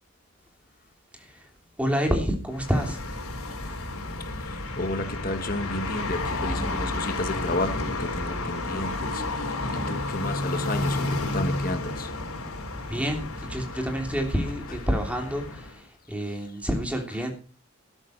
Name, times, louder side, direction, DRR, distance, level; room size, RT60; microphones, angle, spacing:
voice 1, 1.1-1.5 1.8-3.0 12.9-17.3, equal, 5° right, 3.1 m, -28 dB
sound 1, 2.5-15.8, left 2 dB, 90° left, 3.8 m, -31 dB
voice 2, 4.3-12.2, left 2 dB, 40° left, 1.3 m, -32 dB
13.5 x 13.0 x 4.5 m
head